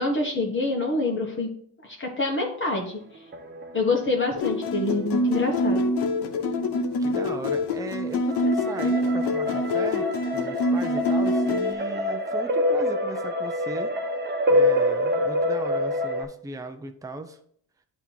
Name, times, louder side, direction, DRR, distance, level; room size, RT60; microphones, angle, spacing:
voice 1, 0.0-1.5 1.8-3.0 3.7-5.9, left 2 dB, 30° left, -1 dB, 1.3 m, -26 dB
sound 1, 3.2-5.9 8.3-16.2, left 1 dB, 25° right, 1.2 m, -27 dB
sound 2, 4.4-11.7, left 1 dB, 70° left, 1.1 m, -25 dB
voice 2, 7.0-10.1 10.3-13.9 14.5-17.4, right 2 dB, 10° right, 6 dB, 0.6 m, -37 dB
8.9 x 3.0 x 5.5 m, 0.63 s
cardioid pair, 95°, 41 cm